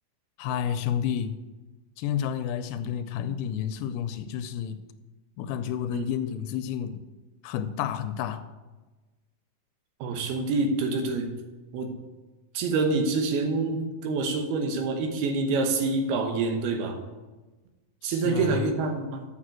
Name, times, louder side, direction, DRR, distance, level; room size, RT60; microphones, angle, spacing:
voice 1, 0.4-1.4 2.0-4.8 5.4-7.0 7.4-8.4 18.0-18.7, left 9 dB, 85° left, 10 dB, 2.4 m, -30 dB
voice 2, 10.0-11.3 11.7-11.9 12.5-17.0 18.0-19.3, right 3 dB, 85° right, 5 dB, 3.0 m, -26 dB
7.3 x 6.2 x 7.6 m, 1.2 s
omnidirectional pair, 4.4 m